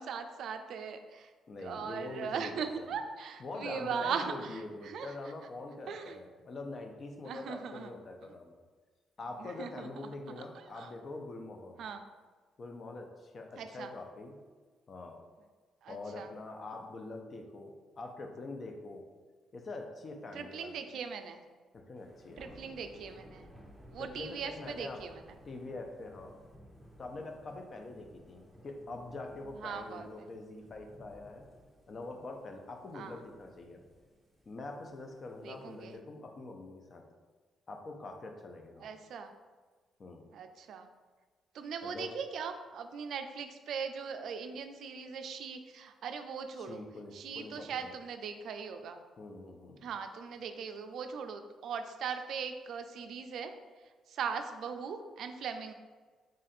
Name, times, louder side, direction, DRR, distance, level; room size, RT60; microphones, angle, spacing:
voice 1, 0.0-1.3 1.6-5.1 5.9-6.2 7.2-7.9 8.2-8.4 9.4-10.1 10.5-10.9 11.8-12.0 13.6-13.9 15.8-16.3 20.3-21.5 22.4-23.5 23.9-25.3 29.6-30.3 32.9-33.2 35.4-36.0 38.8-39.3 40.3-40.9 41.5-46.8 47.1-49.0 49.8-53.5 54.1-55.7, right 6 dB, 70° right, 7 dB, 0.3 m, -40 dB
voice 2, 1.5-2.9 3.4-8.6 9.2-11.8 12.6-14.4 14.9-15.2 15.9-19.1 19.5-20.8 21.7-22.5 24.0-25.0 25.5-26.4 27.0-31.5 31.9-33.8 34.5-37.0 37.7-38.9 40.0-40.2 41.8-42.1 46.6-47.9 49.2-49.9, left 2 dB, 40° left, 4 dB, 0.6 m, -44 dB
Thunder / Rain, 22.0-35.9, equal, ahead, 0.8 m, -57 dB
3.7 x 2.4 x 4.2 m, 1.4 s
cardioid pair, 90°, 0 cm